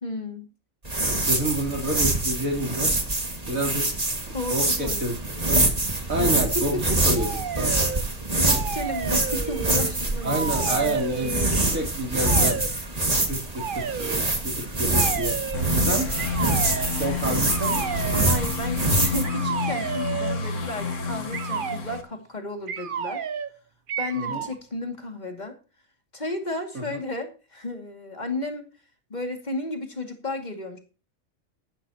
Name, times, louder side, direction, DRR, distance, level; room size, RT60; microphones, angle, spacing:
voice 1, 0.0-0.5 4.3-5.1 6.5-7.0 8.3-11.9 18.1-23.2 24.0-25.5 26.1-28.7 29.1-30.8, left 2 dB, 30° left, 4 dB, 2.6 m, -33 dB
sound 1, 0.8-19.2, right 2 dB, 30° right, 2.2 m, -25 dB
voice 2, 1.3-3.0 3.5-4.0 4.5-5.2 5.5-5.6 6.1-7.3 7.6-7.9 10.2-12.7 13.3-15.4 15.8-16.1 17.0-18.0 24.3-24.4 26.9-27.0, right 1 dB, 80° right, 2 dB, 3.9 m, -29 dB
sound 2, 7.1-8.0 8.4-9.9 10.2-11.5 12.2-12.7 13.5-14.2 14.9-15.6 16.2-16.9 17.4-18.4 19.2-20.4 21.3-21.8 22.7-23.5 23.9-24.5, right 7 dB, 45° right, 0.8 m, -31 dB
sound 3, 15.5-22.0, left 3 dB, 65° left, 2.1 m, -30 dB
14.5 x 12.0 x 3.0 m, 0.32 s
omnidirectional pair, 1.4 m